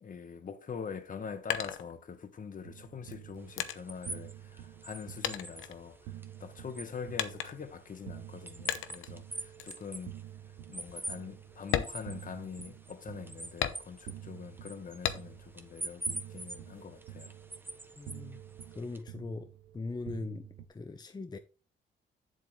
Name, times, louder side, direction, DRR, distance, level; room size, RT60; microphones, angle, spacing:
voice 1, 0.0-10.1 10.7-17.4, left 6 dB, 40° left, 1.2 m, -44 dB
sound 1, 1.0-2.5 3.1-4.9 5.2-6.4 7.2-7.8 8.7-9.2 9.6-9.9 10.3-10.4 10.8-11.0 11.6-12.8 13.6-14.3 15.0-15.6 16.0-16.8, left 11 dB, 85° left, 0.9 m, -36 dB
sound 2, 2.6-20.7, right 13 dB, 90° right, 1.0 m, -49 dB
sound 3, 3.4-19.0, right 2 dB, 10° right, 1.3 m, -46 dB
voice 2, 18.0-18.4 18.7-19.5 19.7-21.4, left 3 dB, 20° left, 0.7 m, -40 dB
7.6 x 7.6 x 3.2 m
cardioid pair, 90°, 20 cm